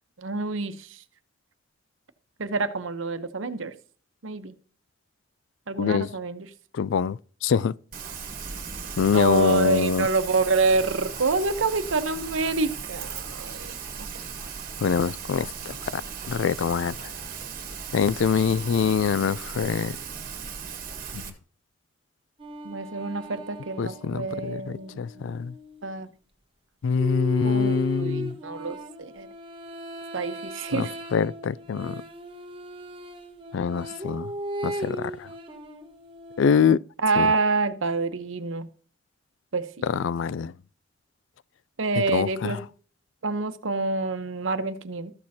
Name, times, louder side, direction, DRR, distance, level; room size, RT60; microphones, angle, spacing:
voice 1, 0.2-0.9 2.4-3.7 4.2-4.5 5.7-6.5 9.1-14.1 22.6-25.3 25.8-26.1 27.4-29.3 30.1-30.9 37.0-38.7 39.5-39.7 41.8-42.6 43.2-45.1, right 3 dB, 85° right, 0.9 m, -27 dB
voice 2, 5.8-6.1 6.7-7.7 9.0-10.1 14.8-16.0 16.3-17.1 17.9-20.0 21.1-21.2 23.8-25.5 26.8-28.4 30.7-32.0 33.5-34.3 34.6-35.3 36.4-36.8 37.2-37.3 39.8-40.5 42.0-42.6, left 6 dB, 75° left, 0.3 m, -25 dB
Rain, 7.9-21.3, right 6 dB, 45° right, 1.5 m, -37 dB
sound 1, 22.4-25.9 27.0-36.6, equal, 25° right, 1.1 m, -37 dB
13.5 x 6.4 x 2.8 m
head